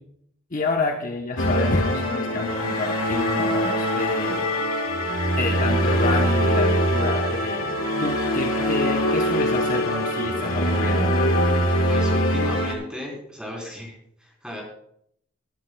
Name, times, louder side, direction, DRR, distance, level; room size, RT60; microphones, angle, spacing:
voice 1, 0.5-4.5 5.4-7.6 8.0-11.1, left 3 dB, 40° left, 2 dB, 0.9 m, -28 dB
sound 1, 1.4-12.7, equal, 85° left, 2.1 m, -23 dB
voice 2, 11.9-14.6, equal, 5° right, -2 dB, 3.6 m, -35 dB
20.0 x 11.0 x 2.3 m, 0.70 s
head